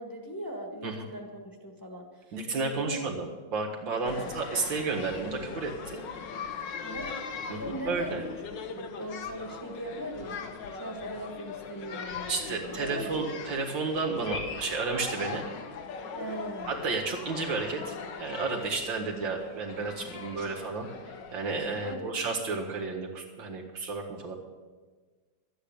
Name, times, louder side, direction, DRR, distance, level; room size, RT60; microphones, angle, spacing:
voice 1, 0.0-3.0 4.0-4.3 6.8-7.1 7.6-8.1 8.5-13.1 16.2-16.9 21.8-22.2, right 1 dB, 10° left, 2 dB, 1.4 m, -39 dB
voice 2, 2.3-6.0 7.5-7.6 7.9-8.2 12.3-15.4 16.7-24.3, right 4 dB, 75° right, 1 dB, 2.5 m, -32 dB
sound 1, 4.1-21.9, left 5 dB, 70° left, 1.7 m, -40 dB
12.0 x 8.8 x 8.8 m, 1.4 s
omnidirectional pair, 2.1 m